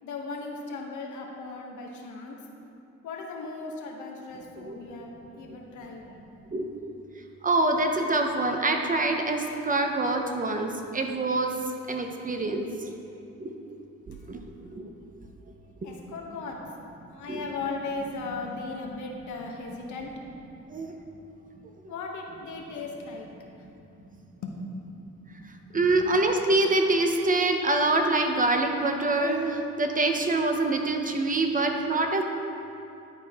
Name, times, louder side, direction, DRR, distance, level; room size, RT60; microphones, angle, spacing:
voice 1, 0.0-2.4 3.0-6.1 15.8-16.7 17.1-20.1 21.9-23.3 23.9-24.0 24.4-25.0 25.3-26.0, left 3 dB, 75° left, 0 dB, 1.1 m, -37 dB
voice 2, 7.4-11.5 11.9-12.9 13.4-13.6 14.1-14.8 17.3-17.4 20.7-20.9 21.6-21.7 25.3-32.2, right 2 dB, 25° right, 4 dB, 0.7 m, -25 dB
10.5 x 4.6 x 3.6 m, 2.8 s
cardioid pair, 90°, 30 cm